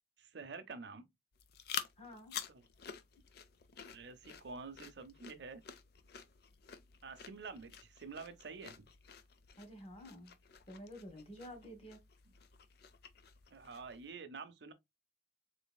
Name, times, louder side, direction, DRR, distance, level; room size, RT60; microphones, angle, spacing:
voice 1, 0.2-1.1 2.5-2.6 3.9-5.6 7.0-8.9 13.5-14.7, right 4 dB, 65° right, 0.6 m, -48 dB
sound 1, 1.3-14.1, left 7 dB, 55° left, 0.4 m, -50 dB
voice 2, 2.0-2.4 9.6-10.3 10.7-12.0, equal, 30° left, 1.1 m, -50 dB
3.9 x 3.3 x 2.2 m
head